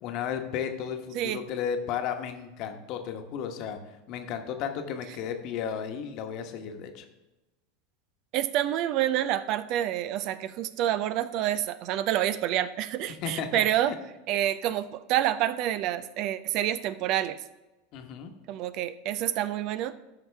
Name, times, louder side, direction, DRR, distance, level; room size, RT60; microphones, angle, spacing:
voice 1, 0.0-3.8 4.1-7.0 13.1-13.7 17.9-18.3, left 8 dB, 50° left, 6 dB, 1.2 m, -34 dB
voice 2, 8.3-13.9 14.3-17.4 18.5-19.9, right 12 dB, 55° right, 14 dB, 0.5 m, -28 dB
14.0 x 5.8 x 3.4 m, 1.1 s
hypercardioid pair, 90°, 0 cm